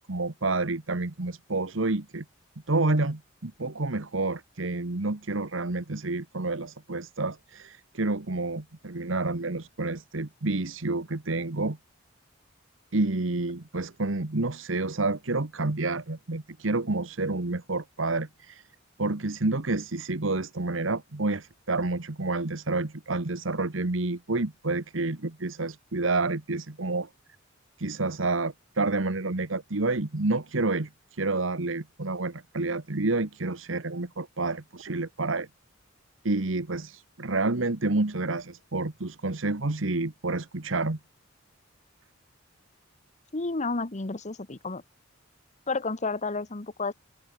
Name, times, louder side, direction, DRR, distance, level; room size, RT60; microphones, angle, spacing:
voice 1, 0.0-2.2 2.7-11.8 12.9-18.6 19.0-27.1 27.8-35.5 36.2-41.0, right 2 dB, 70° right, 1.4 m, -29 dB
voice 2, 43.3-44.8 45.7-46.9, left 3 dB, 35° left, 1.1 m, -31 dB
open air
head